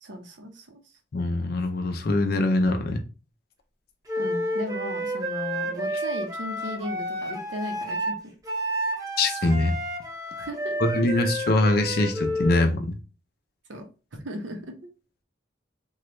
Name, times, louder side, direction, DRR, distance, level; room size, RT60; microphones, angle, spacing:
voice 1, 0.0-0.8 4.2-8.3 10.4-10.8 13.7-13.8 14.1-14.7, equal, 80° right, 4 dB, 0.7 m, -36 dB
voice 2, 1.1-3.0 9.2-9.8 10.8-12.9, left 2 dB, 50° left, 5 dB, 0.4 m, -23 dB
Wind instrument woodwind instrument, 4.1-12.6, equal, 20° right, 0.6 m, -30 dB
3.0 x 2.3 x 3.0 m, 0.35 s
head